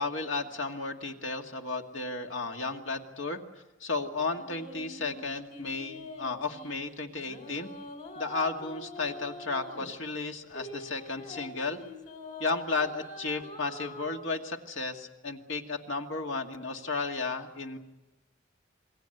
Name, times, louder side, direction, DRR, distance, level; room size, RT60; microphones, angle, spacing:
voice 1, 0.0-3.4 3.8-7.7 8.2-11.8 12.4-17.8, left 3 dB, 80° left, 4 dB, 2.1 m, -33 dB
sound 1, 4.3-6.7 7.2-9.9 10.5-14.2, left 2 dB, 45° left, 4.0 m, -44 dB
28.5 x 21.0 x 8.0 m, 1.0 s
head